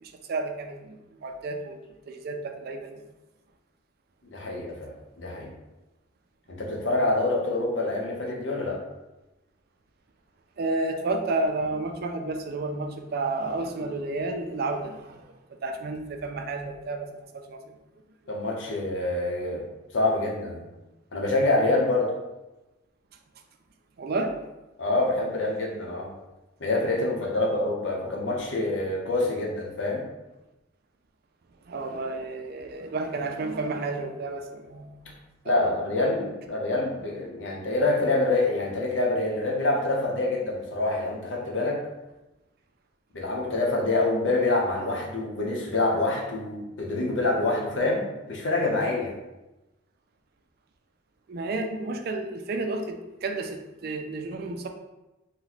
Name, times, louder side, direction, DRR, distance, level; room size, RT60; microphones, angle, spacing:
voice 1, 0.0-1.8 2.1-2.9 10.6-15.4 15.6-17.1 17.3-17.8 24.0-24.3 31.7-35.1 35.4-35.5 51.3-54.7, right 2 dB, 50° right, 5 dB, 0.4 m, -31 dB
voice 2, 4.3-5.5 6.5-8.8 18.3-19.7 19.9-20.6 21.1-22.1 24.8-26.1 26.6-30.0 35.4-41.8 43.1-49.1, left 2 dB, 70° left, -1 dB, 0.7 m, -26 dB
2.9 x 2.2 x 3.9 m, 1.0 s
head